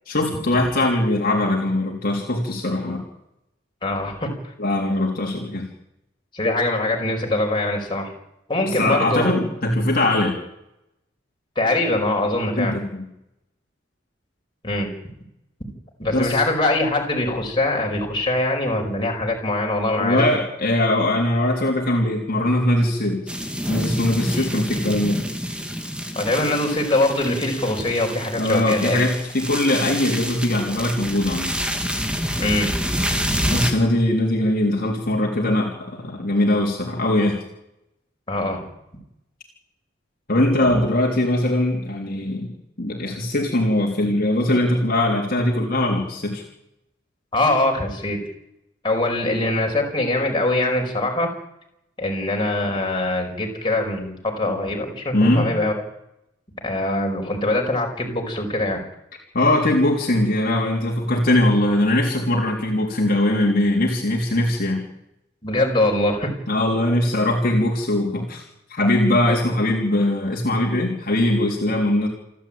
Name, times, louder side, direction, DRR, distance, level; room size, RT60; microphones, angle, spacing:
voice 1, 0.1-3.0 4.6-5.7 8.6-10.4 12.6-13.0 16.1-16.4 20.0-23.2 23.7-25.2 28.4-31.6 33.5-37.4 40.3-42.5 42.8-46.4 55.1-55.5 59.3-64.8 66.5-68.4 68.7-72.1, left 1 dB, 50° left, -1 dB, 3.7 m, -21 dB
voice 2, 3.8-4.3 6.3-8.1 8.5-9.3 11.6-12.8 14.6-14.9 16.0-20.2 24.3-24.5 26.2-29.0 32.4-32.7 38.3-38.6 40.7-40.8 47.3-48.2 48.8-51.4 52.0-55.7 56.6-58.8 65.4-66.3 66.7-67.0, left 2 dB, 25° left, 0 dB, 5.4 m, -23 dB
sound 1, 23.3-33.7, equal, 5° right, 2.5 m, -27 dB
28.5 x 12.0 x 8.9 m, 0.83 s
head